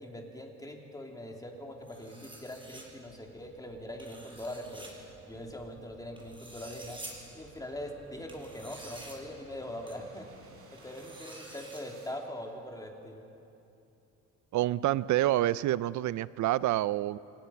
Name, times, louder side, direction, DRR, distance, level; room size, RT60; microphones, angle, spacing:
voice 1, 0.0-4.9 5.2-7.0 7.3-10.3 10.7-13.2, left 1 dB, 10° left, 1 dB, 3.2 m, -42 dB
sound 1, 1.0-12.2, right 3 dB, 50° right, 4.9 m, -58 dB
sound 2, 1.9-2.8 4.0-4.9 6.2-7.1 8.3-9.1 9.9-10.0 10.8-11.8, right 2 dB, 15° right, 5.9 m, -48 dB
voice 2, 14.5-17.2, right 14 dB, 70° right, 18 dB, 0.6 m, -27 dB
27.0 x 19.5 x 5.9 m, 2.8 s
cardioid pair, 90°, 30 cm